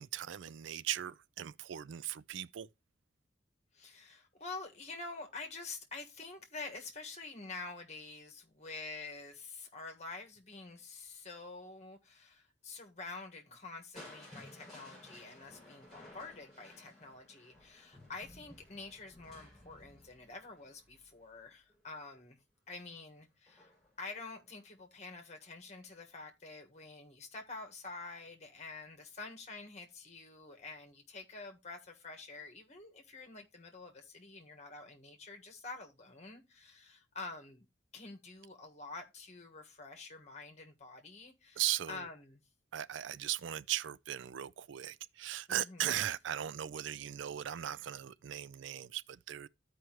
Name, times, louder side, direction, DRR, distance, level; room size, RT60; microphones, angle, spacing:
voice 1, 0.0-2.7 41.6-42.1 42.7-49.5, right 11 dB, 75° right, 0.4 m, -38 dB
voice 2, 3.7-22.4 22.7-37.6 37.9-41.6 41.9-42.4 45.5-46.0, left 3 dB, 35° left, 1.5 m, -48 dB
Crushing, 13.9-21.9 23.5-24.0 24.5-24.6, left 1 dB, ahead, 6.2 m, -56 dB
14.0 x 4.9 x 3.0 m
head